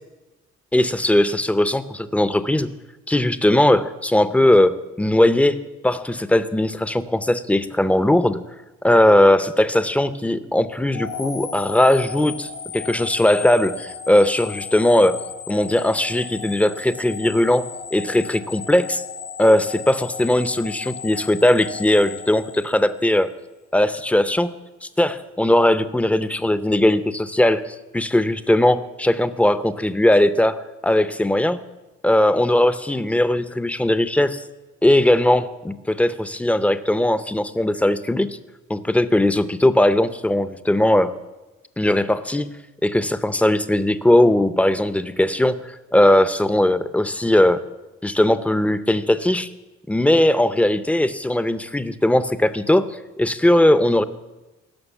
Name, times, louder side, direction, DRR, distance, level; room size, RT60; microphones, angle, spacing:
voice 1, 0.7-2.7 3.1-5.6 5.8-8.4 8.8-15.2 15.5-19.0 19.4-23.3 23.7-24.5 24.8-31.6 32.0-34.4 34.8-38.4 38.7-41.1 41.8-42.5 42.8-47.6 48.0-49.5 49.9-54.0, left 1 dB, 5° left, 13 dB, 0.6 m, -19 dB
sound 1, 10.9-23.1, left 6 dB, 80° left, 1.7 m, -35 dB
16.5 x 6.3 x 7.2 m, 1.1 s
cardioid pair, 90°, 30 cm